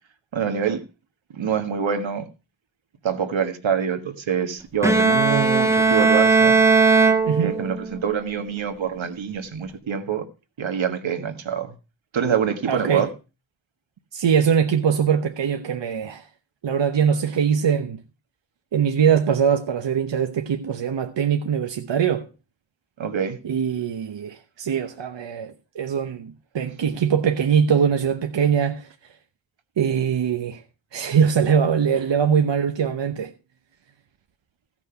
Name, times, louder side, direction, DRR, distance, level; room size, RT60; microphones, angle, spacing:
voice 1, 0.3-0.8 1.3-2.2 3.0-6.6 7.4-10.2 10.6-11.7 12.1-13.1 23.0-23.4, right 7 dB, 85° right, 1.7 m, -25 dB
Bowed string instrument, 4.8-8.0, right 4 dB, 5° right, 1.0 m, -18 dB
voice 2, 12.7-13.1 14.1-16.3 16.6-18.0 18.7-22.3 23.4-28.9 29.8-30.6 30.9-33.3, right 7 dB, 70° right, 1.0 m, -22 dB
16.0 x 6.1 x 5.8 m
wide cardioid pair, 100°, 45 cm